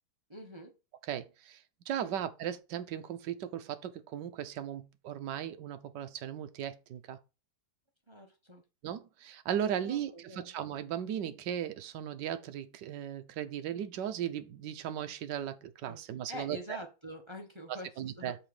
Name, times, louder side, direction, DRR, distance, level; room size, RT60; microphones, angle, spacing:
voice 1, 0.3-0.7 2.0-2.1 8.1-8.6 9.8-10.5 15.9-16.0 16.3-18.4, left 1 dB, 20° right, 0.9 m, -46 dB
voice 2, 1.1-7.2 8.8-16.6 17.7-18.4, right 10 dB, 65° right, 1.4 m, -37 dB
6.2 x 5.1 x 4.9 m
omnidirectional pair, 2.2 m